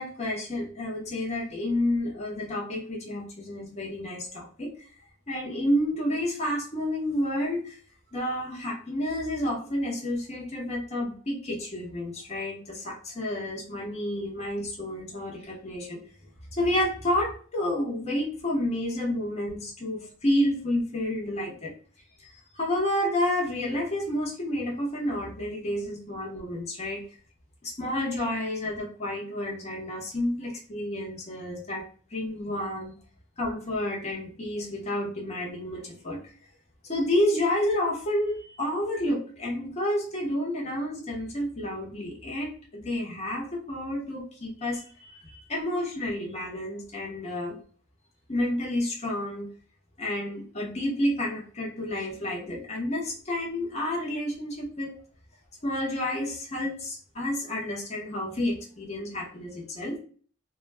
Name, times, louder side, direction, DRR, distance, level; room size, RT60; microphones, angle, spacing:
voice 1, 0.0-4.7 5.3-7.8 8.1-16.0 16.5-21.7 22.2-27.0 27.6-31.9 32.1-32.9 33.4-36.2 36.8-47.6 48.3-49.5 50.0-54.9 55.6-60.0, left 1 dB, 35° left, -2 dB, 0.8 m, -30 dB
2.2 x 2.1 x 3.1 m, 0.43 s
head